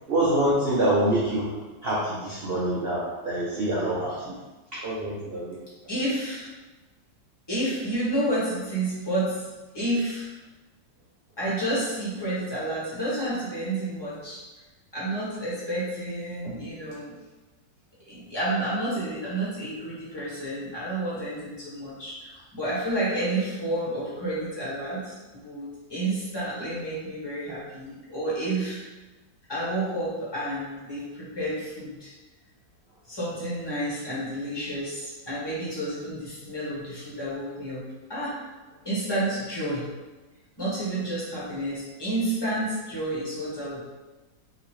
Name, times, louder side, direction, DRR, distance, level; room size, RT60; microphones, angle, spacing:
voice 1, 0.1-4.1 4.7-5.6, right 1 dB, 85° right, -8 dB, 0.5 m, -26 dB
voice 2, 5.9-6.5 7.5-9.5 9.7-10.3 11.4-14.4 14.9-17.1 18.1-28.8 29.5-32.1 33.1-37.8 38.1-38.4 38.8-39.9 40.6-43.8, right 1 dB, 20° left, -9 dB, 0.8 m, -30 dB
2.9 x 2.8 x 3.0 m, 1.2 s
omnidirectional pair, 2.0 m